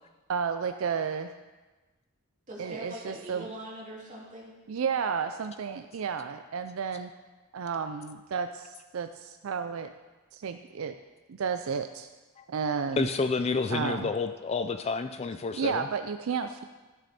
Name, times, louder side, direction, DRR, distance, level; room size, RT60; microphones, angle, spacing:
voice 1, 0.3-1.3 2.6-3.5 4.7-7.1 7.5-9.9 10.3-10.9 11.3-12.1 12.5-13.1 13.7-14.1 15.5-16.6, right 6 dB, 70° right, 8 dB, 0.4 m, -32 dB
voice 2, 2.5-4.5, right 1 dB, 35° right, -5 dB, 2.6 m, -42 dB
voice 3, 13.0-15.9, left 4 dB, 30° left, 9 dB, 0.3 m, -29 dB
13.0 x 6.7 x 4.2 m, 1.2 s
head